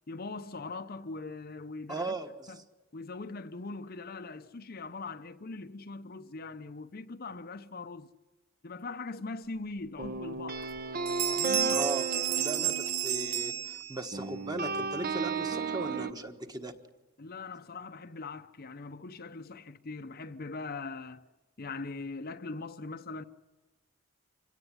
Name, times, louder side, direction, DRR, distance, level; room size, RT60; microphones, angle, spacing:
voice 1, 0.1-2.1 2.5-2.6 2.9-8.1 8.6-10.7 11.4-11.8 12.6-12.7 17.2-21.2 21.6-23.2, left 3 dB, 45° left, 0.7 m, -41 dB
voice 2, 1.9-2.6 11.7-12.1 12.3-16.7, right 2 dB, 20° right, 1.4 m, -38 dB
sound 1, 10.0-13.7 14.1-16.1, right 4 dB, 40° right, 0.9 m, -34 dB
sound 2, 10.0-10.1 10.6-10.8 11.1-14.2, right 11 dB, 85° right, 1.6 m, -32 dB
26.0 x 18.0 x 9.6 m
head